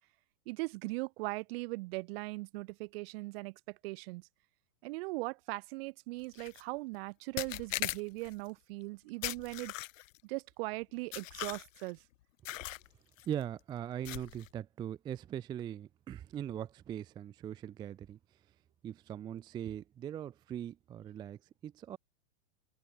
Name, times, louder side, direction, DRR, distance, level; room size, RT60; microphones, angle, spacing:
voice 1, 0.5-4.2 4.8-9.7 10.2-12.0, right 24 dB, 50° right, 1.0 m, -39 dB
sound 1, 6.3-6.6 7.4-8.3 9.2-10.2 11.1-11.9 12.4-12.9 13.2-13.4 14.0-14.5, left 15 dB, 70° left, 1.6 m, -39 dB
voice 2, 13.3-18.2 18.8-22.0, right 10 dB, 10° right, 0.4 m, -41 dB
open air
supercardioid pair, 150°, 40 cm